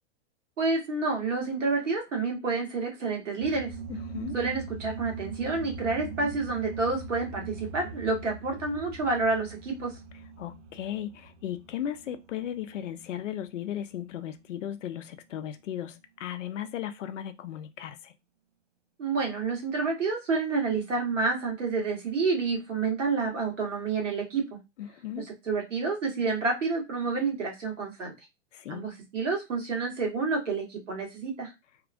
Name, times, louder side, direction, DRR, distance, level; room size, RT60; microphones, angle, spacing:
voice 1, 0.6-3.7 4.3-9.9 19.0-24.6 25.2-28.1 28.7-31.5, right 4 dB, 85° right, 1.4 m, -29 dB
sound 1, 3.4-13.3, right 4 dB, 35° right, 0.4 m, -41 dB
voice 2, 3.9-4.4 10.4-18.1 24.8-25.3 28.5-28.9, left 10 dB, 85° left, 0.5 m, -36 dB
2.9 x 2.3 x 2.4 m
hypercardioid pair, 115°, 36 cm